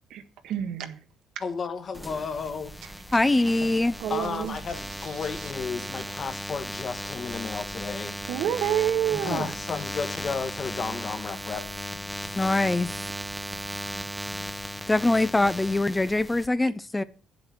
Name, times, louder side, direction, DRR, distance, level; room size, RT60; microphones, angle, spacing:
voice 1, 0.1-1.0 2.8-3.2 3.6-3.7 4.0-4.6 8.3-9.5, right 10 dB, 85° right, 1.6 m, -28 dB
voice 2, 1.4-2.7 4.1-8.2 9.2-11.7, left 5 dB, 50° left, 1.8 m, -33 dB
sound 1, 1.9-16.5, equal, ahead, 1.1 m, -36 dB
voice 3, 3.1-4.0 12.4-13.0 14.9-17.0, left 2 dB, 15° left, 0.6 m, -23 dB
10.0 x 7.8 x 6.2 m
cardioid pair, 90°, 0 cm